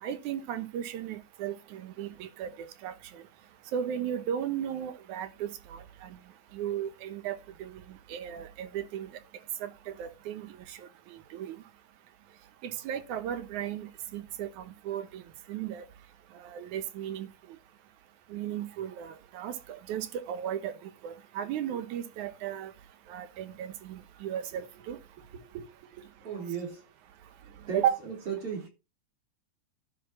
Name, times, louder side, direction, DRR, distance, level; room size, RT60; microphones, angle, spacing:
voice 1, 0.0-3.2 3.7-6.2 6.5-9.1 9.6-10.8 11.1-11.6 12.6-15.2 15.5-15.8 16.4-17.3 18.3-22.7 23.1-25.0 27.7-28.0, right 10 dB, 85° right, 2.5 m, -35 dB
voice 2, 26.2-26.8 27.7-28.7, right 6 dB, 50° right, 3.9 m, -36 dB
11.0 x 4.8 x 6.0 m
omnidirectional pair, 3.4 m